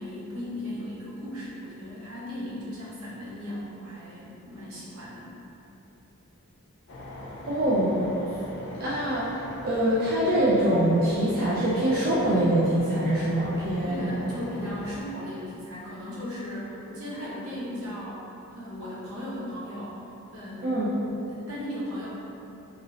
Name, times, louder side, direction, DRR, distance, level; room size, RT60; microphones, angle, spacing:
voice 1, 0.0-5.3 13.8-20.0 20.3-20.8 21.3-22.1, left 1 dB, 70° right, -8 dB, 0.9 m, -37 dB
sound 1, 6.9-15.0, left 1 dB, 55° left, 0.5 m, -41 dB
voice 2, 7.5-8.1 8.7-14.1 20.6-20.9, right 1 dB, 45° right, -9 dB, 0.4 m, -24 dB
2.9 x 2.8 x 2.7 m, 2.9 s
head